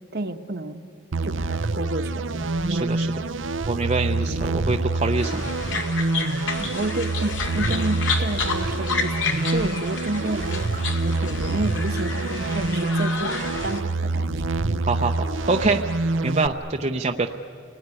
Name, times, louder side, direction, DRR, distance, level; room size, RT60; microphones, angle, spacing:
voice 1, 0.1-0.8 1.2-2.5 6.6-14.3, right 2 dB, 55° right, 8 dB, 1.1 m, -30 dB
sound 1, 1.1-16.5, right 2 dB, 75° right, 0.7 m, -26 dB
voice 2, 2.7-3.1 3.7-5.4 14.8-15.8 16.2-17.3, right 3 dB, 35° right, 4 dB, 0.7 m, -25 dB
sound 2, 5.2-13.8, left 4 dB, 70° left, 2.4 m, -31 dB
29.0 x 19.5 x 9.8 m, 2.7 s
head